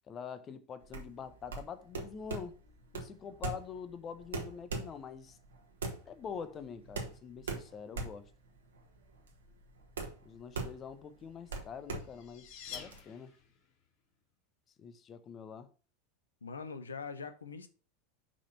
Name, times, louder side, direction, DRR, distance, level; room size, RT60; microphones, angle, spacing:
voice 1, 0.1-2.6 2.9-5.4 6.1-8.3 10.2-13.3 14.8-15.7, left 6 dB, 30° left, 0.7 m, -45 dB
sound 1, 0.8-13.0, right 3 dB, 75° right, 1.5 m, -41 dB
sound 2, 11.9-13.7, left 7 dB, 50° left, 1.7 m, -48 dB
voice 2, 16.4-17.7, left 5 dB, 80° left, 0.8 m, -42 dB
6.1 x 4.2 x 5.4 m
figure-of-eight pair, 85°, 0 cm